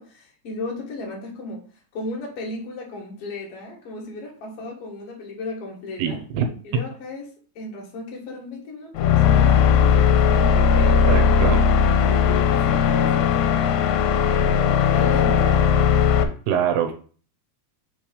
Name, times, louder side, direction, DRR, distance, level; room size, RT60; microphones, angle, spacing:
voice 1, 0.0-1.6 1.9-6.2 6.6-7.3 7.5-11.2 12.0-13.6 14.3-15.7, left 2 dB, 55° left, -1 dB, 1.7 m, -35 dB
voice 2, 6.0-6.5 6.7-6.8 11.1-11.6 16.5-16.9, right 8 dB, 80° right, 5 dB, 2.7 m, -23 dB
sound 1, 9.0-16.2, left 7 dB, 80° left, 2.7 m, -18 dB
6.0 x 3.3 x 5.1 m, 0.41 s
omnidirectional pair, 4.9 m